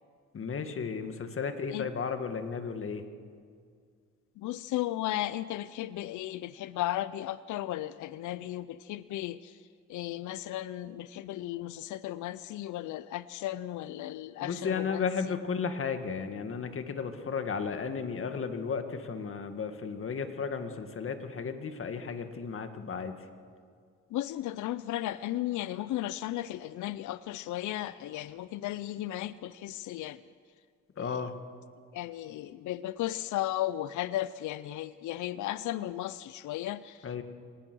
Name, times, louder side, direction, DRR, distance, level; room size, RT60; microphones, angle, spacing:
voice 1, 0.3-3.0 14.4-23.2 31.0-31.3 37.0-37.2, left 5 dB, 45° left, 7 dB, 1.9 m, -34 dB
voice 2, 4.4-9.6 9.9-15.4 24.1-30.2 31.0-31.2 31.9-37.1, left 14 dB, 75° left, 16 dB, 0.6 m, -35 dB
25.0 x 19.0 x 6.2 m, 2.1 s
cardioid pair, 90°, 30 cm